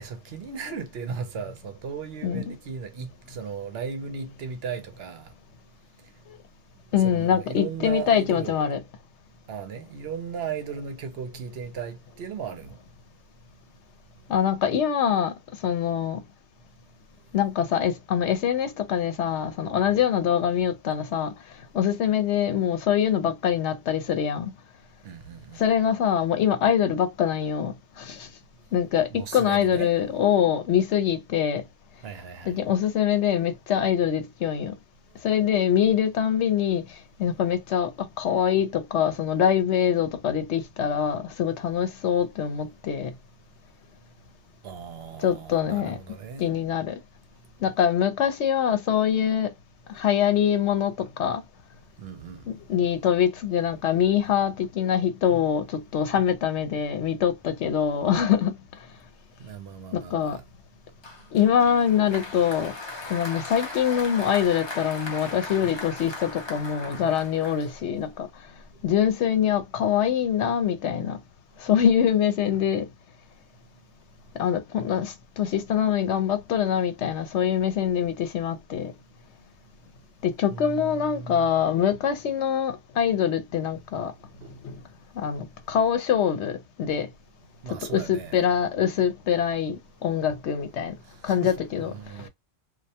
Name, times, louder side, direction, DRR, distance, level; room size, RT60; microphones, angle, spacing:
voice 1, 0.0-5.3 7.0-8.6 9.5-12.8 25.0-25.6 29.1-29.9 32.0-32.5 44.6-46.5 52.0-52.4 59.4-60.4 80.5-81.5 84.4-84.6 87.6-88.3 91.1-92.3, right 6 dB, 65° right, 0.8 m, -36 dB
voice 2, 2.2-2.5 6.9-8.8 14.3-15.3 15.6-16.2 17.3-21.3 21.7-24.5 25.6-28.3 28.7-31.6 32.5-34.7 35.2-36.9 37.2-43.1 45.2-46.0 46.4-47.0 47.6-49.5 49.9-51.4 52.5-58.6 59.9-60.4 61.3-62.7 63.1-68.3 68.8-71.2 71.6-72.9 74.4-78.9 80.2-84.1 84.6-84.7 85.2-87.1 87.7-90.9 91.2-91.9, left 9 dB, 80° left, 0.9 m, -24 dB
Applause, 61.0-68.1, left 3 dB, 35° left, 0.4 m, -38 dB
2.3 x 2.1 x 2.7 m
omnidirectional pair, 1.2 m